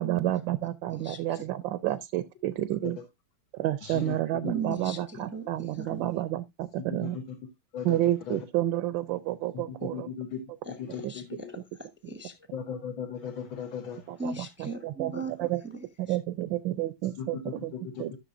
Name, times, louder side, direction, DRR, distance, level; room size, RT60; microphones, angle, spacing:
voice 1, 0.0-3.0 3.6-7.2 7.8-10.1 11.0-11.1 14.1-15.1 15.4-15.6 16.0-17.7 18.0-18.1, right 14 dB, 75° right, 1.3 m, -30 dB
voice 2, 3.8-4.2 4.4-4.6 7.0-7.4 7.7-8.0 8.3-8.5 9.5-10.4 10.7-11.2 12.5-14.0 17.2-18.0, left 7 dB, 75° left, 1.9 m, -37 dB
voice 3, 4.5-6.0 10.6-12.3 14.2-16.2, right 4 dB, 10° right, 0.7 m, -38 dB
14.0 x 6.6 x 2.5 m
omnidirectional pair, 2.2 m